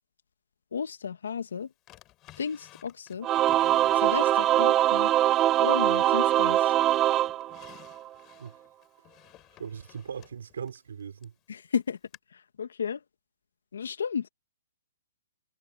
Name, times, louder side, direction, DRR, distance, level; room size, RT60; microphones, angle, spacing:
voice 1, 0.7-1.7 2.4-3.3 4.0-5.1 5.6-6.6 11.5-12.0 12.6-13.0 13.7-14.3, left 7 dB, 80° left, 2.1 m, -33 dB
Drawer open or close, 1.9-4.8 5.3-6.3 6.7-11.4 12.1-12.2, left 17 dB, 25° left, 6.4 m, -55 dB
Singing / Musical instrument, 3.2-8.1, right 13 dB, 20° right, 1.0 m, -23 dB
voice 2, 9.6-11.3, right 7 dB, 75° right, 6.2 m, -39 dB
hypercardioid pair, 150°, 0 cm